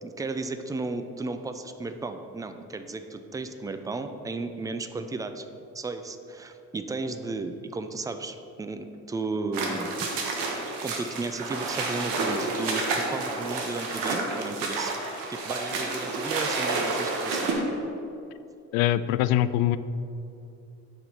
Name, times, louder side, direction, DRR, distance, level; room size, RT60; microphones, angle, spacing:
voice 1, 0.0-5.4 5.7-9.9 10.8-14.9 15.3-17.6, right 3 dB, 10° right, 8 dB, 0.3 m, -34 dB
sound 1, 9.5-17.5, right 3 dB, 60° right, 1.4 m, -30 dB
voice 2, 18.7-19.8, left 13 dB, 50° left, 14 dB, 0.5 m, -23 dB
6.4 x 4.8 x 6.7 m, 2.5 s
figure-of-eight pair, 55°, 47 cm